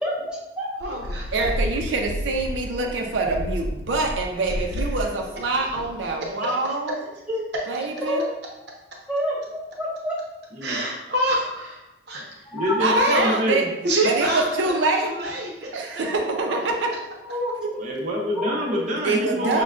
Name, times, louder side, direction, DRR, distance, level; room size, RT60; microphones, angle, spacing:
voice 1, 0.0-0.7 7.3-7.4 8.0-8.2 9.1-9.4 9.8-10.1 12.5-12.8 17.2-17.5 18.4-18.5 19.4-19.5, left 1 dB, 5° right, -7 dB, 0.8 m, -27 dB
sound 1, 0.8-6.3, equal, 75° left, 0.4 m, -31 dB
voice 2, 0.8-1.5 10.6-12.4 12.9-13.3 13.8-14.4 14.8-16.0, right 1 dB, 70° right, -2 dB, 0.9 m, -26 dB
voice 3, 1.3-6.9 7.7-8.2 12.8-13.7 14.0-15.1 15.7-16.9 17.6-17.7 19.0-19.6, right 3 dB, 90° right, 2 dB, 0.5 m, -25 dB
voice 4, 12.5-13.7 17.8-19.6, equal, 40° right, -3 dB, 0.7 m, -26 dB
6.1 x 2.2 x 2.4 m, 0.97 s
head